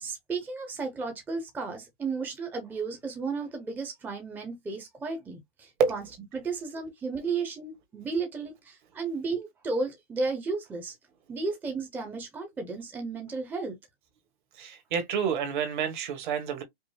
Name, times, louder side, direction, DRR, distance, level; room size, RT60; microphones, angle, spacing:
voice 1, 0.0-6.0 6.3-10.9 11.3-13.8, right 4 dB, 5° right, 0.7 m, -33 dB
voice 2, 14.6-16.6, right 6 dB, 50° right, 1.4 m, -28 dB
5.3 x 2.0 x 3.2 m
hypercardioid pair, 150°, 31 cm